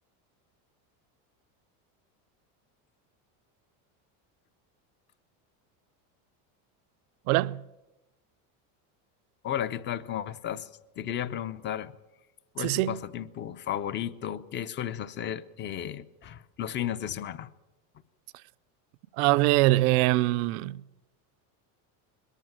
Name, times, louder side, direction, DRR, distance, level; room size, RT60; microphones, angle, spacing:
voice 1, 7.3-7.6 12.6-13.0 19.2-20.8, right 18 dB, 75° right, 0.7 m, -23 dB
voice 2, 9.4-10.7 11.0-11.9 12.5-17.5, left 10 dB, 25° left, 0.7 m, -34 dB
21.5 x 14.0 x 9.0 m
cardioid pair, 150°, 42 cm